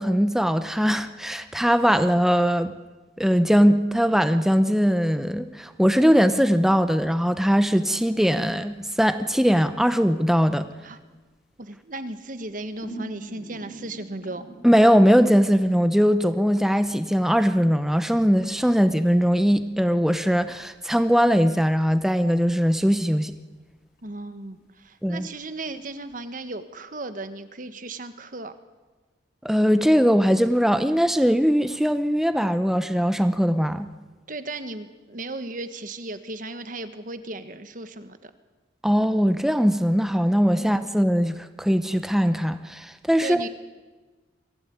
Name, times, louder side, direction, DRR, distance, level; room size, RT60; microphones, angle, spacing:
voice 1, 0.0-2.7 3.2-10.7 14.6-23.3 25.0-25.3 29.4-33.9 38.8-43.5, equal, ahead, 10 dB, 0.8 m, -20 dB
sound 1, 6.9-9.0 9.3-11.2 12.3-16.7 17.0-19.3 20.4-20.7 20.9-21.0 21.3-21.9 22.3-22.4 22.7-23.3 23.7-24.2 24.5-24.6 25.0-25.1 25.4-26.1, right 2 dB, 55° left, 3.9 m, -45 dB
voice 2, 11.6-14.5 24.0-28.5 34.3-38.3 43.2-43.5, right 2 dB, 45° right, 10 dB, 1.5 m, -36 dB
23.5 x 16.0 x 9.5 m, 1.3 s
head